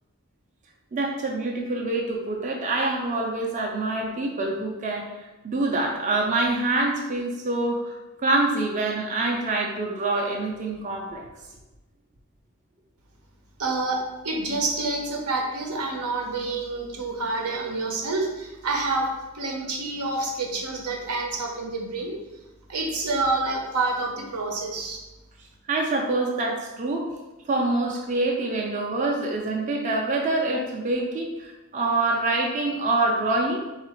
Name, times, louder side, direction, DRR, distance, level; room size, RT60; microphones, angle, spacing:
voice 1, 0.9-11.2 25.7-27.1 27.5-33.6, right 2 dB, 35° right, -1 dB, 0.4 m, -26 dB
voice 2, 13.6-19.1 19.3-22.2 22.7-25.0, right 3 dB, 80° right, 1 dB, 0.8 m, -28 dB
3.7 x 2.4 x 4.3 m, 1.1 s
head